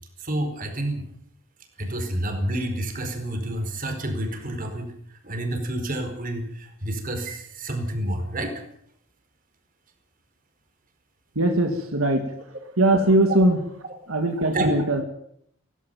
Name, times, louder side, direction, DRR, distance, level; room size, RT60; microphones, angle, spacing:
voice 1, 0.2-1.0 1.8-8.6 13.3-13.4 14.5-15.0, right 1 dB, 40° right, 6 dB, 4.6 m, -29 dB
voice 2, 11.4-12.3 12.8-13.6 14.1-15.0, right 1 dB, 80° right, 4 dB, 2.4 m, -20 dB
17.5 x 16.5 x 9.2 m, 0.71 s
head